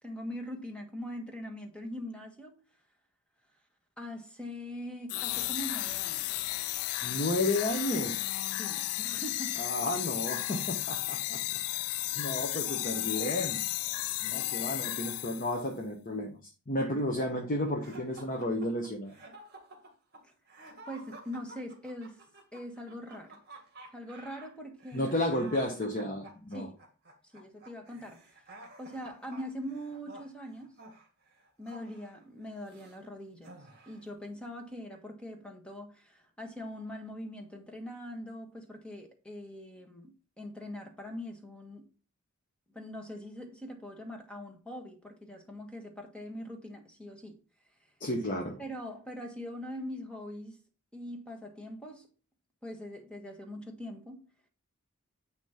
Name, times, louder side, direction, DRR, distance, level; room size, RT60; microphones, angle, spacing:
voice 1, 0.0-2.6 4.0-6.4 8.5-9.7 12.2-12.6 20.2-20.3 20.9-22.3 22.5-23.4 23.9-25.1 26.5-26.7 27.3-28.5 28.8-30.8 31.6-41.9 42.7-47.4 47.8-47.9 48.6-50.6 50.9-52.1 52.6-54.2, equal, 5° left, 1.5 m, -42 dB
sound 1, 5.1-15.6, left 16 dB, 75° left, 0.3 m, -34 dB
voice 2, 7.0-8.2 9.6-11.4 11.7-13.6 14.2-19.2 24.9-26.7 48.0-48.6, left 1 dB, 40° left, 1.1 m, -32 dB
sound 2, 17.8-33.0 33.4-34.1, right 2 dB, 45° right, 2.0 m, -52 dB
9.4 x 3.2 x 5.8 m
head